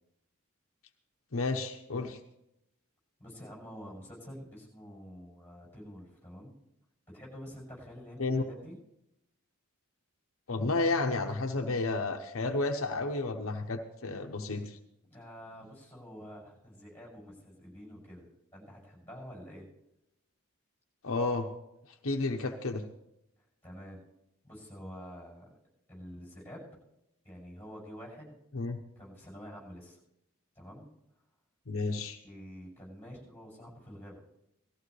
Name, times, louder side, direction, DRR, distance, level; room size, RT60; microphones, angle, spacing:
voice 1, 1.3-2.2 8.2-8.4 10.5-14.8 21.0-21.5 21.9-22.8 28.5-28.8 31.7-32.2, left 3 dB, 70° left, 4 dB, 0.9 m, -31 dB
voice 2, 3.2-6.5 7.1-8.8 15.1-19.7 23.6-24.0 24.4-25.5 25.9-26.7 27.2-28.4 28.9-30.0 30.5-30.9 31.8-32.0 32.2-34.2, equal, 10° left, -4 dB, 6.8 m, -48 dB
18.5 x 14.5 x 3.3 m, 0.83 s
head